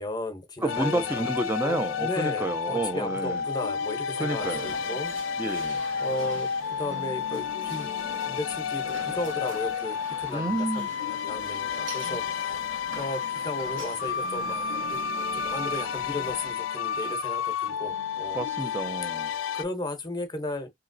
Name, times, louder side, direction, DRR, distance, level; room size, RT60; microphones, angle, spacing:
voice 1, 0.0-1.3 1.6-5.1 5.7-7.9 8.2-18.4 19.5-20.7, left 1 dB, 20° left, 0.7 m, -35 dB
voice 2, 0.6-3.4 4.2-4.6 5.4-5.8 10.3-10.9 18.3-19.3, right 2 dB, 10° right, 0.4 m, -30 dB
sound 1, 0.7-19.6, left 7 dB, 85° left, 0.3 m, -31 dB
sound 2, 4.4-16.5, right 3 dB, 75° right, 0.7 m, -43 dB
3.0 x 2.8 x 2.6 m
head